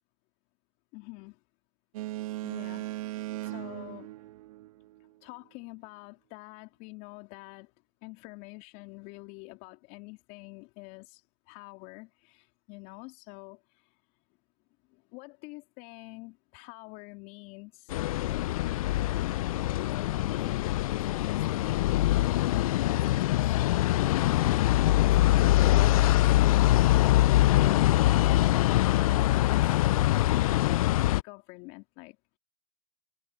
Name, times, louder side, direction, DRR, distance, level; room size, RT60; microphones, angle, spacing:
voice 1, 0.9-1.4 2.4-3.0 3.4-4.1 5.2-7.7 8.0-14.0 14.9-18.1 19.8-30.8 31.1-32.4, left 27 dB, 45° left, 2.7 m, -47 dB
Boat Water vehicle, 1.9-5.1, right 16 dB, 60° right, 1.5 m, -38 dB
sound 1, 17.9-31.2, left 15 dB, 65° left, 0.5 m, -23 dB
hypercardioid pair, 110°, 20 cm